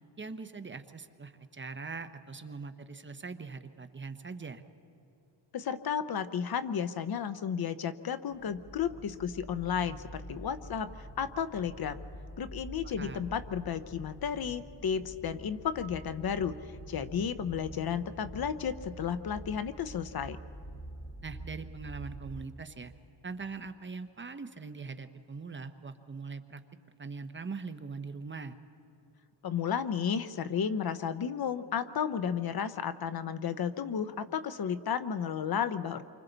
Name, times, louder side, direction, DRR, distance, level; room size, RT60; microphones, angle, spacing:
voice 1, 0.2-4.6 12.8-13.3 21.2-22.9 23.2-26.6 27.0-28.5, right 4 dB, 25° right, 9 dB, 0.8 m, -42 dB
voice 2, 5.5-12.0 12.4-16.5 16.9-20.4 29.4-36.0, left 7 dB, 55° left, 13 dB, 0.8 m, -33 dB
sound 1, 8.3-22.5, right 1 dB, 20° left, 1.4 m, -46 dB
28.5 x 25.0 x 4.0 m, 2.9 s
wide cardioid pair, 120°, 44 cm